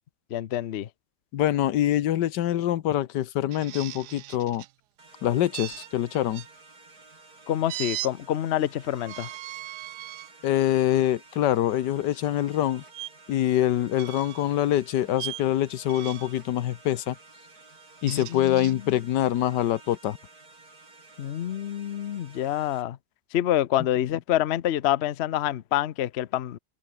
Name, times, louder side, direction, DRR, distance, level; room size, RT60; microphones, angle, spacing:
voice 1, 0.3-0.9 7.5-9.3 18.0-19.0 21.2-23.0 23.3-26.6, left 12 dB, 55° left, 0.7 m, -27 dB
voice 2, 1.3-4.6 5.2-6.4 10.4-12.8 13.3-17.2 18.0-20.2, left 12 dB, 85° left, 1.5 m, -25 dB
sound 1, 3.5-4.7 5.5-6.5 7.7-8.1 9.0-10.3 10.9-11.1 12.9-13.1 13.9-14.5 15.1-15.5 15.9-16.4 17.8-18.7, right 15 dB, 80° right, 1.2 m, -38 dB
sound 2, 5.0-22.8, right 3 dB, 60° right, 4.8 m, -52 dB
omnidirectional pair, 1.8 m